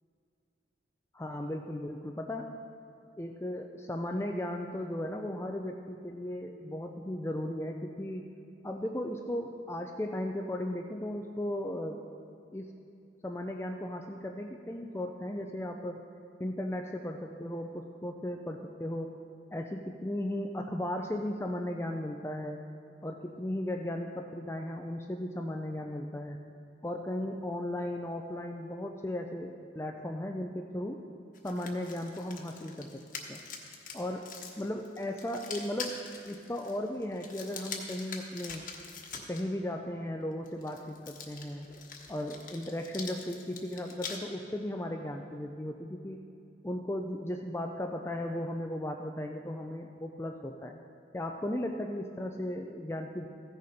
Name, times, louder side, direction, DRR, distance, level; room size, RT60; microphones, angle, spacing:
voice 1, 1.1-2.6 3.2-8.2 8.6-12.0 12.5-12.7 13.2-16.0 16.4-19.1 19.5-22.6 23.0-26.4 26.8-31.0 31.4-33.0 33.3-33.4 33.9-38.7 39.3-41.7 42.1-46.2 46.6-50.7 51.1-53.3, left 1 dB, 15° left, 3 dB, 0.4 m, -36 dB
sound 1, 31.3-39.4 40.5-44.2, left 5 dB, 45° left, 1.2 m, -44 dB
15.5 x 6.7 x 5.1 m, 2.6 s
head